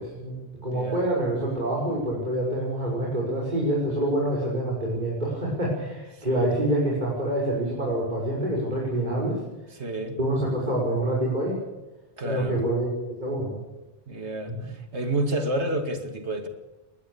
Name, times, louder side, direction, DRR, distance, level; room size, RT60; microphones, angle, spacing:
voice 1, 0.0-0.4 0.6-9.4 10.2-11.6 12.2-13.6 14.5-14.6, right 1 dB, 40° right, -4 dB, 6.0 m, -26 dB
voice 2, 0.5-1.0 6.1-6.5 9.7-10.2 12.2-12.6 14.1-16.5, right 1 dB, 75° right, 7 dB, 2.4 m, -30 dB
21.0 x 20.0 x 7.0 m, 1.1 s
omnidirectional pair, 1.2 m